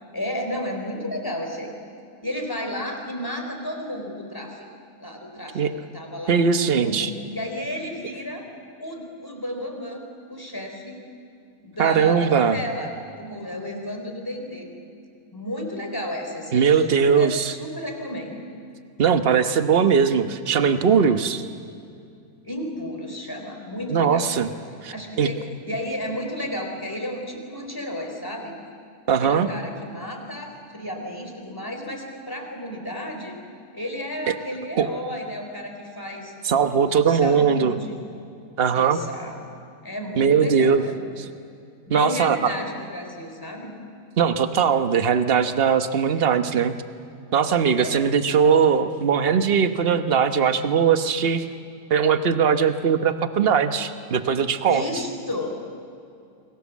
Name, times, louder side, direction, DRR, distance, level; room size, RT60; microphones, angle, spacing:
voice 1, 0.1-1.7 2.2-4.7 5.0-5.7 5.9-8.5 8.8-10.0 10.3-11.0 11.6-14.7 15.3-18.4 22.4-24.3 24.9-28.5 29.1-33.4 33.7-36.3 36.6-38.0 38.7-39.4 39.8-41.1 41.9-43.8 47.7-48.0 54.7-55.5, left 1 dB, 15° left, 2 dB, 3.8 m, -32 dB
voice 2, 6.3-7.1 11.8-12.6 16.5-17.5 19.0-21.4 23.9-24.5 24.8-25.3 29.1-29.5 34.3-34.4 34.8-34.9 36.4-37.7 38.6-39.0 40.2-40.8 41.2-41.3 41.9-42.5 44.2-46.8 47.3-51.4 51.9-54.8, right 6 dB, 40° right, 9 dB, 1.2 m, -20 dB
29.5 x 22.5 x 7.4 m, 2.5 s
omnidirectional pair, 1.7 m